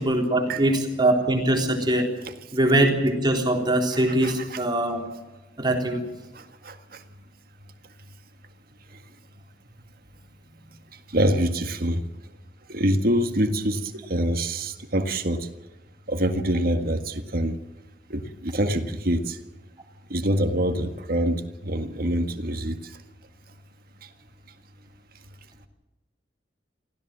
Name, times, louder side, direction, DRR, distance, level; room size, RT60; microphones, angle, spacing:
voice 1, 0.0-2.1 2.5-5.1 5.6-6.0, right 1 dB, 25° right, 2 dB, 3.6 m, -22 dB
voice 2, 4.1-4.6 6.4-7.0 11.1-12.0 12.7-15.5 16.1-17.6 18.1-19.4 20.1-22.8, right 1 dB, 55° right, 7 dB, 1.8 m, -25 dB
24.5 x 16.0 x 7.6 m, 1.1 s
head